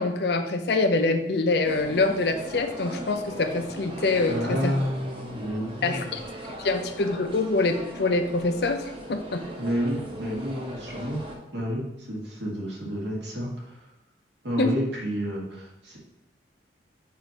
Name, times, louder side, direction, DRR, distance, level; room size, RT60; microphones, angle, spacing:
voice 1, 0.0-4.7 5.8-6.2 6.6-9.4 14.6-14.7, left 3 dB, 60° left, 7 dB, 0.5 m, -25 dB
sound 1, 1.6-11.4, equal, 30° right, 0.9 m, -39 dB
voice 2, 4.2-6.1 9.6-11.2 11.5-13.7 14.4-16.0, equal, 70° right, -2 dB, 1.7 m, -30 dB
7.8 x 2.7 x 5.2 m, 0.88 s
head